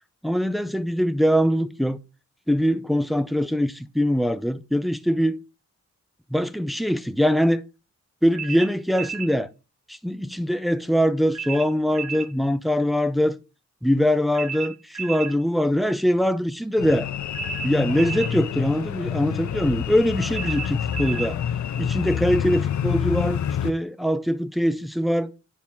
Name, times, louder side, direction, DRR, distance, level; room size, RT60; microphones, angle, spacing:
voice 1, 0.2-2.0 2.5-5.4 6.3-7.6 8.2-9.5 9.9-13.3 13.8-17.1 17.6-21.4 21.8-25.3, equal, ahead, 0.4 m, -22 dB
sound 1, 8.4-9.3 11.3-12.3 14.3-15.4 17.3-18.4 20.3-21.3, right 7 dB, 65° right, 0.9 m, -33 dB
sound 2, 16.8-23.7, left 9 dB, 70° left, 0.5 m, -27 dB
9.6 x 4.5 x 3.6 m
wide cardioid pair, 145°, 29 cm